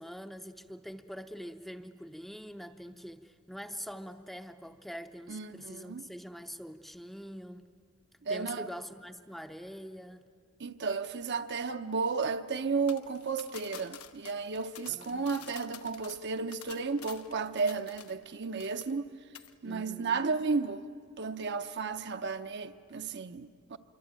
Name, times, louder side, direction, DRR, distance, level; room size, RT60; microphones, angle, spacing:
voice 1, 0.0-7.6 8.3-10.2 14.9-15.3 19.6-20.2, equal, ahead, 0.6 m, -44 dB
voice 2, 5.3-6.0 8.2-8.7 10.6-19.1 19.6-20.9 21.2-23.8, right 4 dB, 50° right, 0.8 m, -33 dB
sound 1, 12.9-18.3 18.6-19.1 19.4-19.5, left 9 dB, 80° left, 1.0 m, -49 dB
26.5 x 23.5 x 8.9 m
head